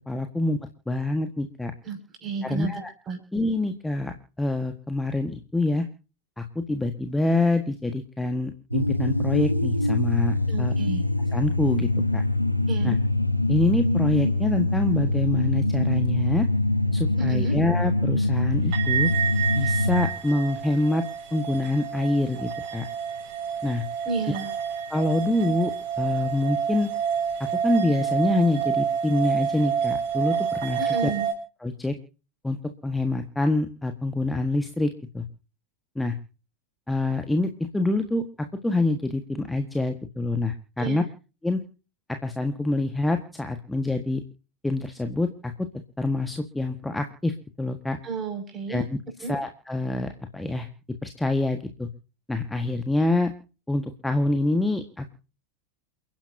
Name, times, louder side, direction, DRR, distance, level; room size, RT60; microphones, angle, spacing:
voice 1, 0.1-0.6 0.9-1.7 2.4-2.9 3.3-5.9 6.4-10.7 11.3-12.2 12.8-13.0 13.5-16.5 16.9-19.1 19.5-21.1 21.3-22.8 23.6-23.8 24.9-26.9 27.4-31.1 31.6-31.9 32.4-32.6 32.8-35.2 35.9-36.1 36.9-41.0 41.4-41.6 42.1-44.2 44.6-45.7 46.0-48.0 48.7-48.8 49.2-50.7 51.0-51.9 52.3-53.3 53.7-55.1, left 2 dB, 5° left, 7 dB, 1.5 m, -26 dB
voice 2, 1.8-3.2 10.5-11.0 12.7-12.9 17.2-17.6 24.0-24.5 30.8-31.3 40.8-41.0 48.0-48.8 49.2-49.3, right 4 dB, 25° right, 5 dB, 6.1 m, -32 dB
sound 1, 8.7-20.1, left 2 dB, 90° left, 1.0 m, -24 dB
sound 2, 18.7-31.3, right 7 dB, 50° right, 6.8 m, -29 dB
29.5 x 10.5 x 2.8 m, 0.35 s
figure-of-eight pair, 90°, 0 cm